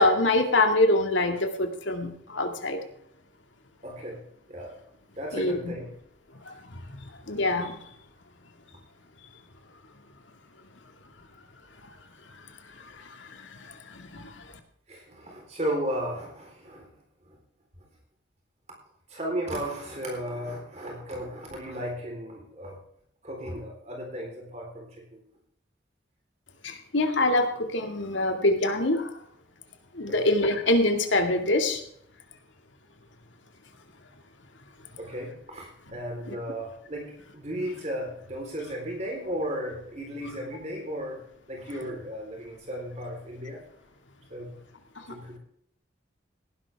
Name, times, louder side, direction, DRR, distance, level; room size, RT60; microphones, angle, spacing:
voice 1, 0.0-2.8 5.3-5.7 6.5-6.6 6.9-7.8 12.8-14.6 26.6-29.1 29.9-31.8 36.3-36.4 45.0-45.1, left 2 dB, 90° left, 5 dB, 2.2 m, -25 dB
voice 2, 3.8-4.2 4.5-4.8 5.2-5.9 14.9-16.9 17.3-17.4 19.1-22.8 23.2-25.2 30.1-30.2 35.0-41.2 41.5-43.6 44.3-44.5 45.1-45.4, equal, 35° right, 0 dB, 3.9 m, -35 dB
18.0 x 11.5 x 3.5 m, 0.68 s
head